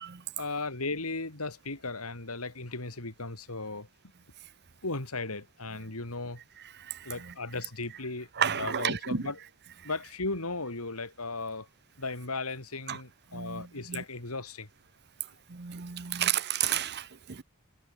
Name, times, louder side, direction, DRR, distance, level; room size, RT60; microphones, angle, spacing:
voice 1, 0.4-3.9 4.8-6.4 7.0-9.4 9.8-11.7 12.0-14.7, left 3 dB, 85° left, 3.8 m, -36 dB
voice 2, 6.8-7.3 8.4-9.3 12.9-13.0 13.3-14.0 15.5-17.4, right 9 dB, 50° right, 0.9 m, -32 dB
head